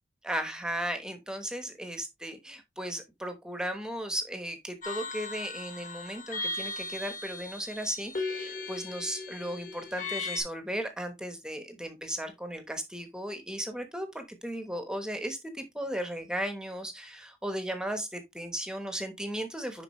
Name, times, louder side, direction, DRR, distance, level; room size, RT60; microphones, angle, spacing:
voice 1, 0.2-19.8, equal, 5° right, 1.1 m, -36 dB
sound 1, 4.8-10.4, left 3 dB, 45° left, 2.6 m, -37 dB
10.5 x 4.3 x 3.1 m
head